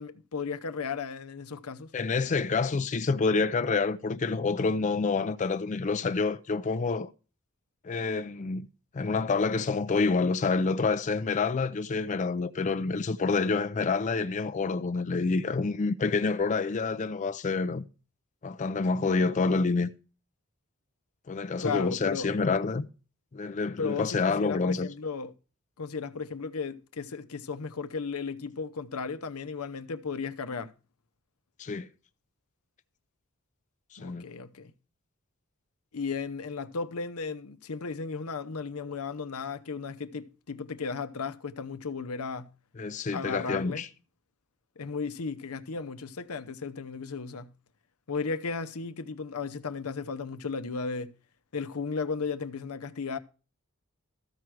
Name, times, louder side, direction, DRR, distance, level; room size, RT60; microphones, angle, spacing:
voice 1, 0.0-1.9 21.6-22.3 23.8-25.3 25.8-30.7 34.0-34.7 35.9-42.5 43.1-43.8 44.8-47.5 48.1-51.1 51.5-53.2, left 5 dB, 85° left, 0.7 m, -35 dB
voice 2, 1.9-7.1 7.8-8.7 8.9-17.8 18.4-19.9 21.3-22.9 23.3-24.9 31.6-31.9 33.9-34.2 42.8-43.9, left 4 dB, 35° left, 0.4 m, -28 dB
13.5 x 4.7 x 6.2 m
head